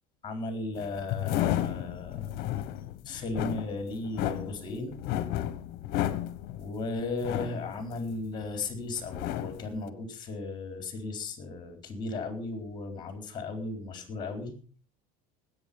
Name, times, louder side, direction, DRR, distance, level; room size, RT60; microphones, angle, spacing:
voice 1, 0.2-2.4 2.7-5.0 6.6-14.6, left 3 dB, 25° left, 5 dB, 4.3 m, -36 dB
sound 1, 0.7-8.6 9.0-9.8, left 12 dB, 60° left, 1.3 m, -32 dB
19.5 x 8.8 x 5.4 m, 0.41 s
cardioid pair, 140°, 18 cm